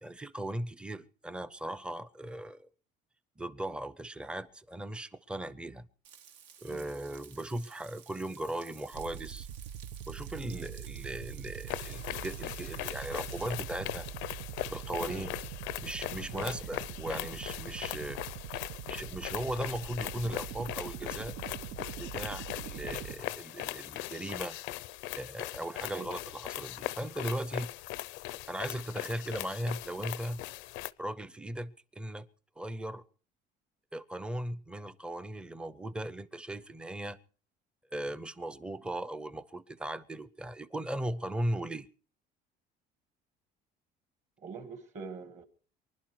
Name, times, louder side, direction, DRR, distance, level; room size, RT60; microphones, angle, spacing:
voice 1, 0.0-2.7 3.4-5.9 6.6-9.5 10.1-14.1 14.7-15.3 15.8-18.2 18.8-21.4 22.0-24.6 25.2-27.7 28.5-30.4 31.0-32.3 32.6-33.0 33.9-37.2 37.9-41.9, right 1 dB, 5° right, 0.7 m, -38 dB
Frying (food), 6.0-13.6, right 8 dB, 70° right, 1.6 m, -54 dB
sound 1, 8.9-23.2, right 10 dB, 85° right, 1.2 m, -43 dB
sound 2, 11.7-30.9, left 17 dB, 80° left, 0.7 m, -40 dB
voice 2, 15.0-15.3 16.3-16.6 25.9-26.1 44.4-45.4, right 4 dB, 40° right, 2.0 m, -44 dB
24.5 x 11.5 x 4.7 m
cardioid pair, 145°, 19 cm